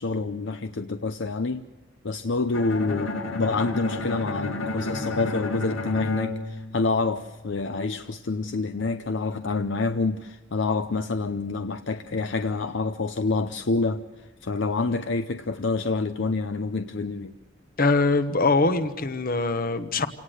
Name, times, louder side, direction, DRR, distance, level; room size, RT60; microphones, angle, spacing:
voice 1, 0.0-1.7 2.0-14.0 14.4-17.3, left 3 dB, 65° left, 0.7 m, -27 dB
Bowed string instrument, 2.5-7.5, left 2 dB, 80° left, 2.4 m, -32 dB
voice 2, 17.8-20.1, left 3 dB, 45° left, 1.2 m, -22 dB
27.5 x 18.0 x 8.0 m
head